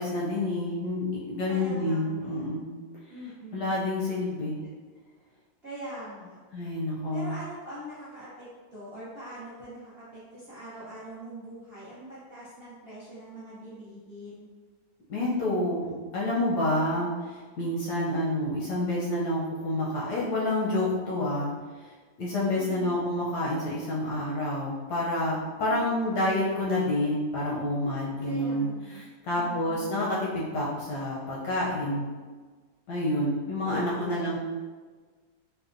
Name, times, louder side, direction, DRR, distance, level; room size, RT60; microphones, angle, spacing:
voice 1, 0.0-2.7 3.5-4.6 6.5-7.3 15.1-17.1 17.6-21.5 22.2-32.0 32.9-34.4, left 1 dB, 75° left, -5 dB, 1.0 m, -28 dB
voice 2, 1.5-2.5 3.1-3.7 5.6-6.4 7.1-14.5 22.5-23.0 25.7-26.3 28.2-29.1 29.3-30.0 33.6-34.3, right 1 dB, 85° right, -10 dB, 0.5 m, -43 dB
4.2 x 2.2 x 2.5 m, 1.4 s
omnidirectional pair, 2.2 m